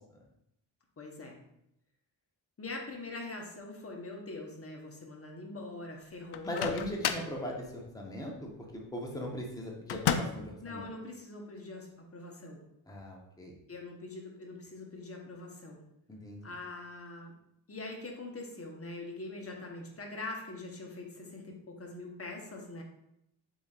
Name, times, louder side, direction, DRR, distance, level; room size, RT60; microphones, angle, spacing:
voice 1, 1.0-1.4 2.6-6.8 10.6-12.6 13.7-15.8 16.4-17.3 17.7-22.8, left 2 dB, 30° left, 1 dB, 1.1 m, -43 dB
Microwave oven, 6.3-7.4 9.9-10.5, left 8 dB, 65° left, 0.5 m, -32 dB
voice 2, 6.4-10.9 12.9-13.5 16.1-16.4, left 1 dB, 10° left, -1 dB, 0.9 m, -39 dB
7.1 x 2.7 x 2.4 m, 0.79 s
cardioid pair, 80°, 44 cm